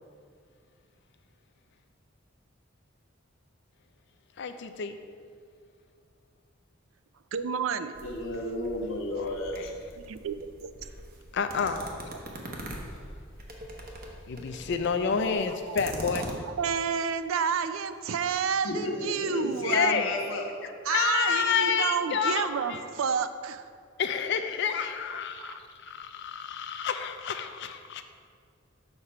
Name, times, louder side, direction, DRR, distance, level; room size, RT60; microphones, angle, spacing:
voice 1, 4.4-5.0 9.2-9.7 11.3-11.8 14.3-16.3 19.7-20.1 20.9-22.8 24.0-28.0, left 6 dB, 60° left, 8 dB, 0.4 m, -29 dB
voice 2, 7.3-7.9 10.0-10.4 10.6-10.7 15.2-15.9 16.4-20.1 20.9-23.6 25.1-25.6, right 6 dB, 85° right, 11 dB, 0.4 m, -30 dB
sound 1, 7.9-16.3, right 1 dB, 45° right, 0.9 m, -43 dB
voice 3, 8.0-9.7 18.6-20.5, left 1 dB, 85° left, -1 dB, 1.1 m, -32 dB
6.7 x 4.3 x 5.7 m, 2.2 s
head